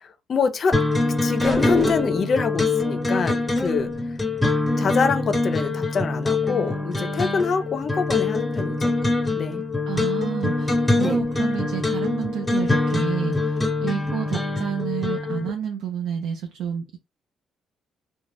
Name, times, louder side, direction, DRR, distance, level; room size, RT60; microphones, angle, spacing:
voice 1, 0.3-0.8 1.2-4.2 4.8-8.9 9.4-9.6 11.0-11.2, left 5 dB, 50° left, 0.5 m, -25 dB
sound 1, 0.7-15.5, left 2 dB, 10° left, 0.8 m, -24 dB
sound 2, 1.4-2.4, right 1 dB, 20° right, 0.7 m, -27 dB
voice 2, 9.9-17.0, right 8 dB, 85° right, 0.4 m, -30 dB
2.4 x 2.1 x 3.3 m
cardioid pair, 90°, 0 cm